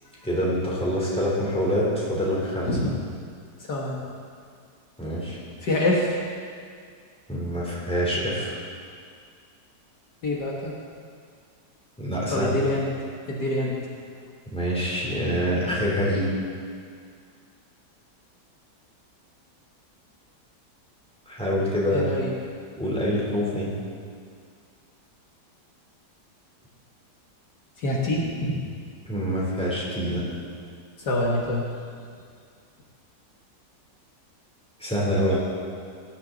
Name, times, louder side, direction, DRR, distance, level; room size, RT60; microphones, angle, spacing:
voice 1, 0.2-2.7 5.0-5.4 7.3-8.6 12.0-12.6 14.5-16.3 21.3-22.2 22.8-23.7 29.1-30.2 34.8-35.4, equal, 5° left, -6 dB, 3.5 m, -25 dB
voice 2, 3.6-4.0 5.6-6.2 10.2-10.7 12.3-12.9 13.3-13.8 21.9-22.3 27.8-28.7 31.0-31.7, left 1 dB, 65° left, -3 dB, 2.0 m, -25 dB
18.5 x 11.0 x 4.0 m, 2.2 s
omnidirectional pair, 1.9 m